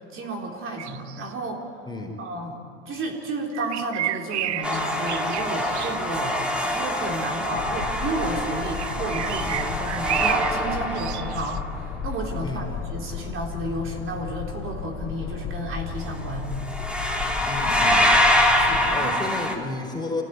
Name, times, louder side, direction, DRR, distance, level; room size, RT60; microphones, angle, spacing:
voice 1, 0.0-1.7 2.2-2.6 2.9-16.5 17.5-17.6 18.5-19.1, right 1 dB, 40° right, 0 dB, 4.1 m, -32 dB
sound 1, 0.8-1.3 3.5-6.0 8.8-10.6 10.9-11.6, right 13 dB, 85° right, 1.0 m, -31 dB
voice 2, 1.9-2.2 12.4-12.7 17.4-18.1 18.9-20.2, left 3 dB, 15° left, 1 dB, 4.3 m, -32 dB
sound 2, 4.6-11.7 16.0-16.2 16.5-19.5, left 1 dB, 5° right, 2.9 m, -24 dB
sound 3, 7.5-18.9, left 6 dB, 50° left, 3.9 m, -34 dB
25.0 x 16.5 x 9.4 m, 2.8 s
hypercardioid pair, 95°, 33 cm